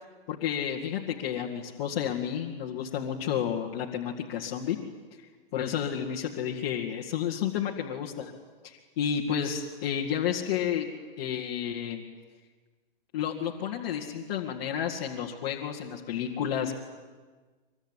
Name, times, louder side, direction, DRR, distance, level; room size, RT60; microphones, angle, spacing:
voice 1, 0.3-4.8 5.5-8.3 8.6-10.9 11.2-12.0 13.1-16.7, left 9 dB, 30° left, -2 dB, 1.9 m, -31 dB
24.5 x 22.5 x 9.8 m, 1.4 s
hypercardioid pair, 180°, 29 cm